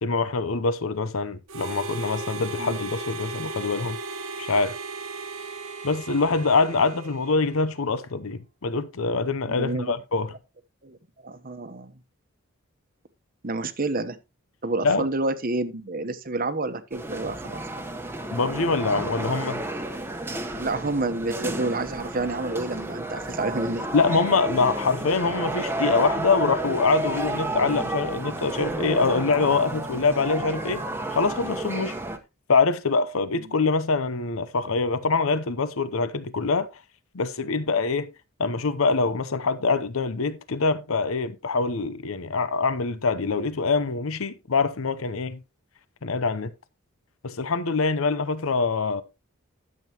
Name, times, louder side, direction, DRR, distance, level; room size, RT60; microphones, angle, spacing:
voice 1, 0.0-4.0 4.4-4.8 5.8-10.3 14.8-15.1 18.3-19.6 23.9-30.8 31.1-31.9 32.5-36.8 37.1-38.1 38.4-45.4 46.0-46.5 47.2-49.0, left 4 dB, 75° left, 0.8 m, -24 dB
Harmonica, 1.5-7.9, right 3 dB, 85° right, 1.3 m, -36 dB
voice 2, 9.6-10.0 10.8-11.0 11.2-11.9 13.4-14.2 14.6-17.9 20.6-23.9, right 2 dB, 40° right, 1.0 m, -29 dB
sound 1, 16.9-32.2, right 2 dB, 10° right, 1.0 m, -31 dB
12.5 x 7.6 x 2.9 m
head